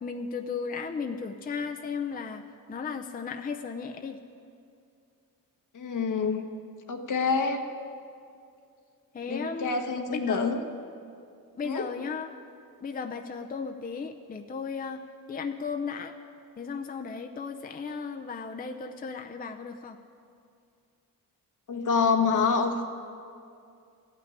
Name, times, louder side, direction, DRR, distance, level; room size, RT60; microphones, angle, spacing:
voice 1, 0.0-2.4 2.7-4.2 9.1-9.8 10.1-10.5 11.6-12.3 12.8-15.0 15.3-16.1 16.6-20.0, left 5 dB, 25° left, 5 dB, 0.6 m, -35 dB
voice 2, 5.7-6.4 6.9-7.6 9.3-10.6 11.6-11.9 21.7-22.9, left 5 dB, 60° left, 5 dB, 1.2 m, -26 dB
14.0 x 6.0 x 9.7 m, 2.4 s
cardioid pair, 95°, 36 cm